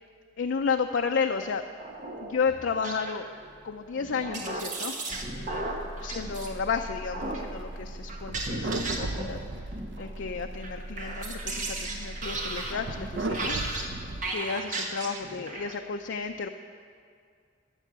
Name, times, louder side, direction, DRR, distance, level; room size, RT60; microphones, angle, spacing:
voice 1, 0.4-1.6 2.2-3.3 3.6-4.9 5.3-9.4 10.0-13.6 14.3-16.5, left 5 dB, 80° left, 5 dB, 0.5 m, -32 dB
sound 1, 1.8-3.5 4.0-6.5 7.1-7.5 8.1-9.5 9.7-10.3 10.6-15.8, right 2 dB, 40° right, 1.3 m, -36 dB
sound 2, 5.1-14.3, right 2 dB, 70° right, 0.6 m, -37 dB
12.5 x 7.4 x 6.9 m, 2.2 s
head